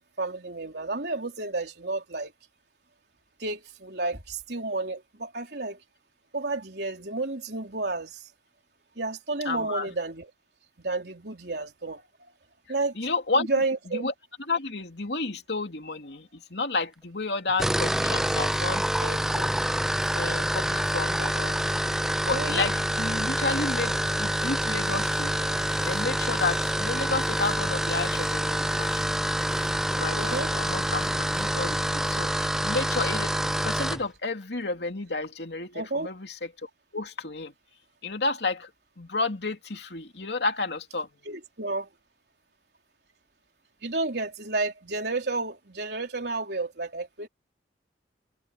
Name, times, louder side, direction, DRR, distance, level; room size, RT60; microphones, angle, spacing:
voice 1, 0.0-2.3 3.4-5.8 6.3-8.3 9.0-10.3 10.8-12.0 12.7-12.9 13.4-14.1 22.3-22.7 30.1-30.5 35.7-36.1 41.3-41.9 43.8-47.3, right 3 dB, 65° right, 4.2 m, -31 dB
voice 2, 9.4-9.9 12.9-13.5 13.9-14.1 14.5-19.5 20.1-21.7 22.3-25.3 25.9-29.1 30.0-31.1 31.4-37.5 38.0-38.7 39.0-41.1, left 3 dB, 70° left, 2.7 m, -31 dB
sound 1, 17.5-34.0, right 1 dB, 5° right, 0.4 m, -27 dB
sound 2, 22.2-31.9, left 4 dB, 45° left, 3.1 m, -46 dB
head